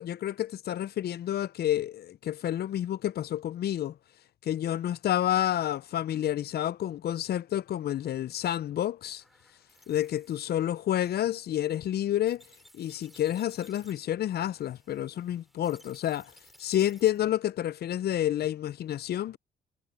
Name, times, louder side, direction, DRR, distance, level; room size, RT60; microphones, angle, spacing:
voice 1, 0.0-4.0 4.4-9.2 9.9-12.4 12.7-16.3 16.6-19.4, left 12 dB, 55° left, 0.4 m, -29 dB
sound 1, 9.2-17.3, equal, ahead, 5.0 m, -59 dB
cardioid pair, 90°, 20 cm